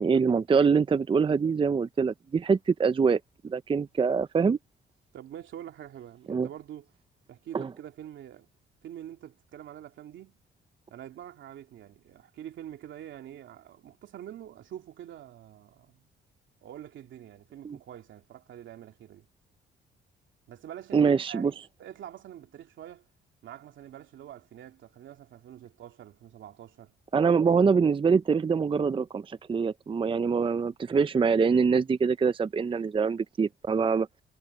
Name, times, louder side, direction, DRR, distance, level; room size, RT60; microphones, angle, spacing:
voice 1, 0.0-4.6 6.3-6.5 7.5-7.7 17.6-17.8 20.9-21.5 27.1-34.1, right 5 dB, 25° right, 0.5 m, -24 dB
voice 2, 5.1-6.9 7.3-8.5 8.8-10.4 10.9-16.1 16.6-19.3 20.5-23.0 23.4-26.9, right 11 dB, 75° right, 2.8 m, -45 dB
cardioid pair, 90°, 20 cm